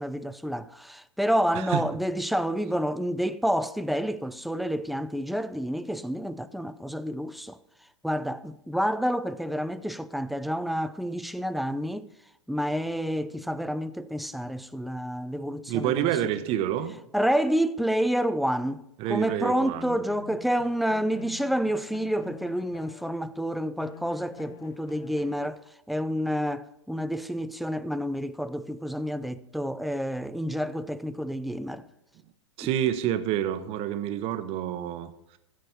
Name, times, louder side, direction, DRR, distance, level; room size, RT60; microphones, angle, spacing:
voice 1, 0.0-7.6 8.0-12.1 12.5-16.2 17.1-25.6 25.9-31.8 32.6-32.7, equal, ahead, 0.3 m, -29 dB
voice 2, 1.5-1.9 15.7-17.0 19.0-20.0 32.6-35.4, right 11 dB, 40° right, 0.9 m, -28 dB
sound 1, 19.8-23.4 23.8-25.5, left 8 dB, 50° left, 0.8 m, -48 dB
15.0 x 5.2 x 5.8 m
hypercardioid pair, 105°, 16 cm